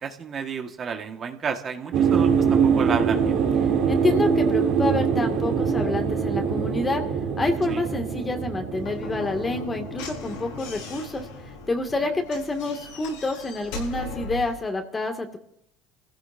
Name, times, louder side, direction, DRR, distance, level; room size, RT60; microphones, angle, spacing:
voice 1, 0.0-3.4 7.7-7.8, right 6 dB, 40° right, 5 dB, 1.5 m, -31 dB
sound 1, 1.9-11.2 11.4-11.6, right 6 dB, 65° right, 3.0 m, -24 dB
voice 2, 3.9-7.0 7.4-11.3 11.7-15.4, left 2 dB, 25° left, 5 dB, 2.1 m, -28 dB
Slam / Knock, 8.8-14.6, left 3 dB, 90° left, 7.3 m, -38 dB
27.5 x 16.0 x 2.7 m, 0.76 s
supercardioid pair, 90°, 0 cm